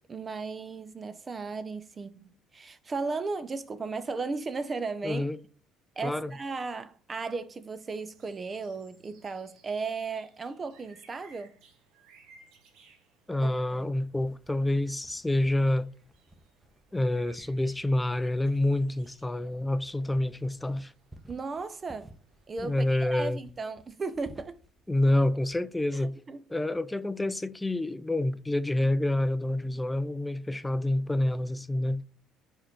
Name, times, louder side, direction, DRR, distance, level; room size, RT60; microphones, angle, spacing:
voice 1, 0.1-5.3 6.0-11.5 13.4-13.9 21.3-22.1 22.5-24.5 25.9-26.0 26.3-26.4, right 4 dB, 35° right, 0.6 m, -35 dB
voice 2, 5.0-5.4 6.0-6.3 13.3-15.9 16.9-20.9 22.6-23.4 24.9-26.2 26.5-32.0, left 1 dB, 10° left, 0.4 m, -28 dB
sound 1, 8.1-23.4, right 4 dB, 70° right, 1.2 m, -62 dB
sound 2, 14.2-25.6, right 1 dB, 5° right, 0.9 m, -56 dB
4.9 x 4.4 x 4.4 m
hypercardioid pair, 55°, 0 cm